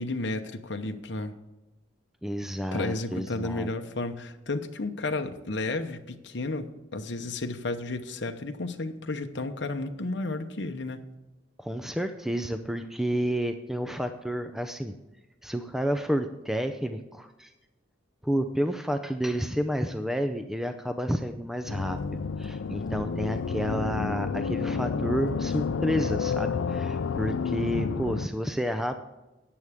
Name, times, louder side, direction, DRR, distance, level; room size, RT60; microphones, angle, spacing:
voice 1, 0.0-1.3 2.7-11.0, left 2 dB, 60° left, 5 dB, 0.9 m, -32 dB
voice 2, 2.2-3.7 11.6-14.9 15.4-17.5 18.2-29.0, equal, ahead, 7 dB, 0.5 m, -30 dB
sound 1, 21.7-28.3, left 5 dB, 75° left, 0.4 m, -30 dB
14.0 x 9.6 x 3.6 m, 1.0 s
head